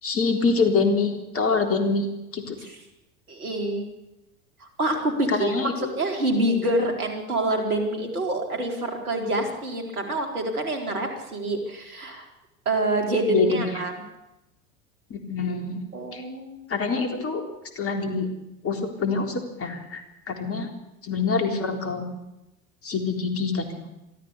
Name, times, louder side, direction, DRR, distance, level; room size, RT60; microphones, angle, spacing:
voice 1, 0.0-2.1 2.3-2.6 5.3-5.9 13.3-13.7 15.1-15.8 16.1-16.2 16.7-17.4 17.8-18.3 18.6-20.0 20.3-20.7 21.0-22.1 22.8-23.7, left 4 dB, 30° left, 5 dB, 3.9 m, -25 dB
voice 2, 3.3-3.9 4.6-12.3 12.7-13.9 15.9-16.6, right 1 dB, 80° right, 3 dB, 4.3 m, -26 dB
23.0 x 14.0 x 8.4 m, 0.92 s
figure-of-eight pair, 80°, 43 cm